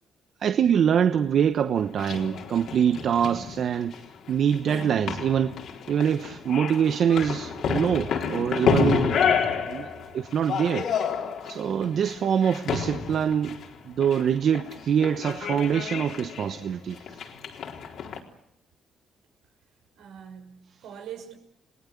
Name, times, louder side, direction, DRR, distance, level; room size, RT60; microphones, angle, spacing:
voice 1, 0.4-4.0 4.3-5.6 5.9-9.1 9.7-10.9 11.4-13.5 13.8-17.2, right 8 dB, 60° right, 1.1 m, -24 dB
sound 1, 1.8-18.2, left 6 dB, 70° left, 4.1 m, -30 dB
voice 2, 20.0-21.3, right 8 dB, 90° right, 5.9 m, -43 dB
30.0 x 19.5 x 8.5 m
cardioid pair, 90°, 0 cm